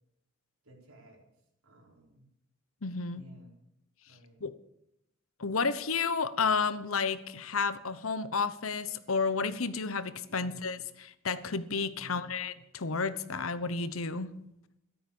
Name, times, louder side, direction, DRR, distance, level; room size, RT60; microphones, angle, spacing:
voice 1, 0.6-1.2 1.6-2.3 3.1-3.6 4.1-4.4 10.3-10.7 11.9-12.3, right 1 dB, 90° right, 0 dB, 4.7 m, -55 dB
voice 2, 2.8-3.2 4.4-4.5 5.4-14.3, left 4 dB, 85° left, 14 dB, 1.0 m, -31 dB
14.0 x 12.5 x 7.1 m, 0.82 s
head